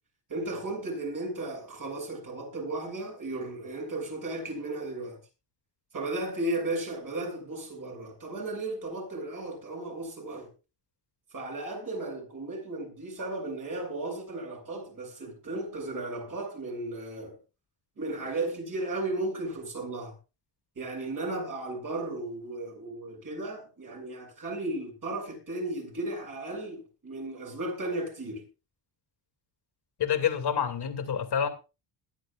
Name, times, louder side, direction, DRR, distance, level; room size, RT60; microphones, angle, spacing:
voice 1, 0.3-5.2 5.9-10.5 11.3-17.4 18.0-20.2 20.8-28.5, right 2 dB, 40° right, 7.3 m, -35 dB
voice 2, 30.0-31.5, left 8 dB, 55° left, 2.5 m, -27 dB
21.0 x 11.0 x 2.5 m
cardioid pair, 135°, 48 cm